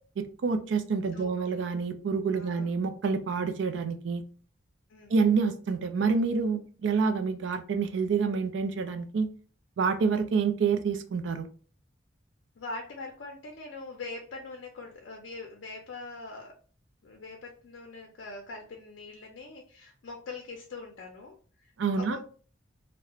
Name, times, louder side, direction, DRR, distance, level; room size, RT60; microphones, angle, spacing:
voice 1, 0.2-4.2 5.1-9.3 9.8-11.5 21.8-22.2, right 5 dB, 70° right, 8 dB, 0.4 m, -27 dB
voice 2, 1.1-1.6 2.3-2.7 4.9-5.1 12.6-16.6 17.0-22.2, left 3 dB, 70° left, 1 dB, 0.5 m, -43 dB
2.4 x 2.1 x 2.8 m, 0.41 s
head